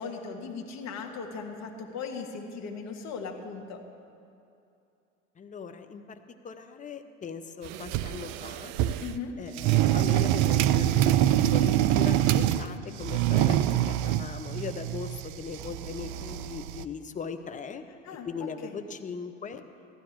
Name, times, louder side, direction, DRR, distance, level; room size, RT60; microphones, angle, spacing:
voice 1, 0.0-3.8 9.0-9.3 18.0-18.3 18.6-18.7, left 5 dB, 45° left, 2 dB, 1.9 m, -38 dB
voice 2, 5.4-6.2 6.4-8.7 9.4-17.8 18.3-19.6, left 6 dB, 20° left, 8 dB, 0.9 m, -39 dB
sound 1, 7.6-9.2 9.6-12.7 13.0-16.8, right 12 dB, 50° right, 0.6 m, -25 dB
15.0 x 12.5 x 4.8 m, 2.7 s
hypercardioid pair, 90°, 39 cm